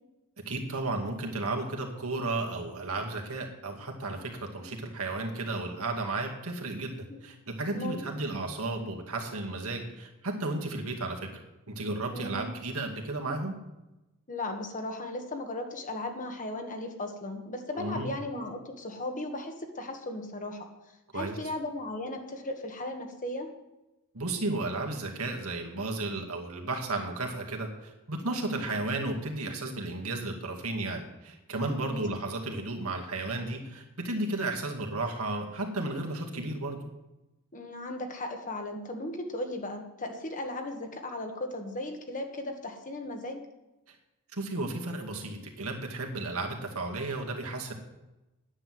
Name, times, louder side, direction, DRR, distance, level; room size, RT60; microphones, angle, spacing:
voice 1, 0.5-11.4 11.7-13.5 17.7-18.2 21.1-21.4 24.1-36.8 43.9-44.0 44.3-47.7, right 2 dB, 70° right, 1 dB, 2.4 m, -33 dB
voice 2, 12.1-12.5 14.3-20.6 21.1-23.5 31.8-32.0 37.5-43.4, left 1 dB, 35° left, 4 dB, 1.7 m, -36 dB
10.5 x 9.8 x 7.8 m, 0.99 s
head